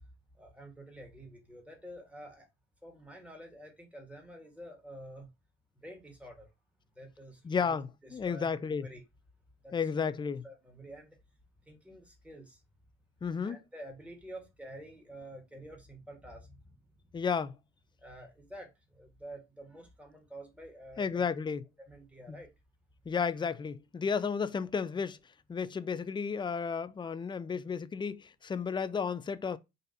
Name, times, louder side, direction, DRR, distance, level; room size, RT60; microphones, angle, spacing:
voice 1, 0.3-2.5 2.8-5.3 5.8-6.5 7.0-9.0 9.6-9.7 10.4-11.2 11.6-12.6 13.4-16.8 18.0-21.2 21.9-22.5, right 1 dB, 5° right, 1.9 m, -49 dB
voice 2, 7.4-8.9 9.7-10.4 13.2-13.6 17.1-17.6 21.0-21.6 22.3-22.4 23.1-25.2 25.5-29.6, left 6 dB, 15° left, 0.3 m, -33 dB
3.9 x 2.6 x 4.0 m
hypercardioid pair, 50°, 34 cm